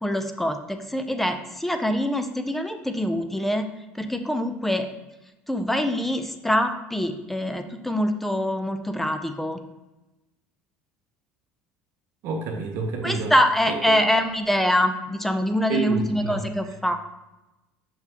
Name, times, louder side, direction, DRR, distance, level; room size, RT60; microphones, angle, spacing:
voice 1, 0.0-3.6 3.9-4.9 5.5-9.6 13.0-17.0, equal, 5° left, 7 dB, 0.5 m, -24 dB
voice 2, 12.2-13.3 13.6-13.9 15.7-16.5, right 4 dB, 60° right, 0 dB, 1.0 m, -28 dB
5.8 x 5.6 x 2.9 m, 1.0 s
cardioid pair, 125°, 5 cm